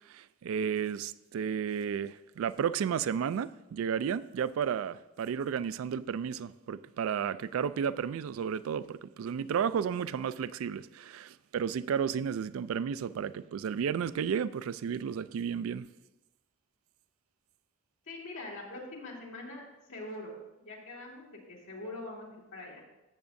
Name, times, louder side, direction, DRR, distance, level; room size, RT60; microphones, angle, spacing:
voice 1, 0.1-15.9, right 7 dB, 90° right, 0.3 m, -33 dB
voice 2, 18.1-19.6 19.9-22.8, left 2 dB, 85° left, 2.3 m, -43 dB
14.0 x 7.3 x 2.6 m
head